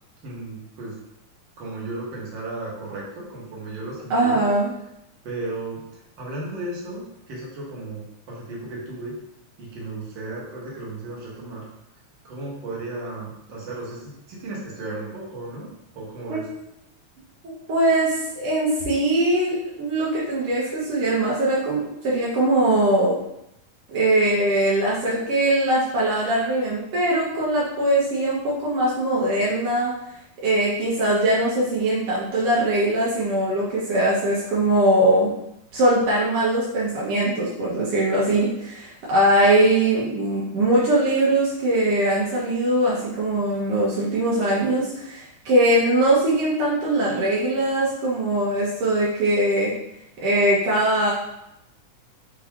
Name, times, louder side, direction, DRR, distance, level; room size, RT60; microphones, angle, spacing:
voice 1, 0.2-0.9 1.6-4.4 5.2-5.8 6.2-9.1 9.6-11.6 12.2-15.7 15.9-16.4, right 2 dB, 65° right, -5 dB, 1.2 m, -34 dB
voice 2, 4.1-4.7 16.3-16.5 17.4-23.1 23.9-29.9 30.4-35.3 35.7-49.7 50.2-51.1, right 1 dB, 85° right, -7 dB, 1.1 m, -21 dB
5.7 x 2.3 x 3.5 m, 0.84 s
omnidirectional pair, 3.6 m